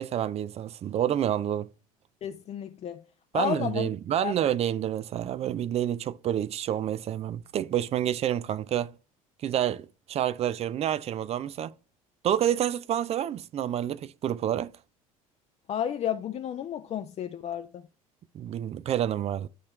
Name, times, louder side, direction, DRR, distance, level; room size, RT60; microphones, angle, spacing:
voice 1, 0.0-1.7 3.3-8.9 9.4-11.7 12.2-14.7 18.3-19.5, right 10 dB, 35° right, 0.5 m, -28 dB
voice 2, 2.2-3.0 3.3-3.9 4.2-4.3 15.7-17.8, left 10 dB, 35° left, 0.6 m, -32 dB
11.0 x 4.2 x 3.1 m
figure-of-eight pair, 65°, 18 cm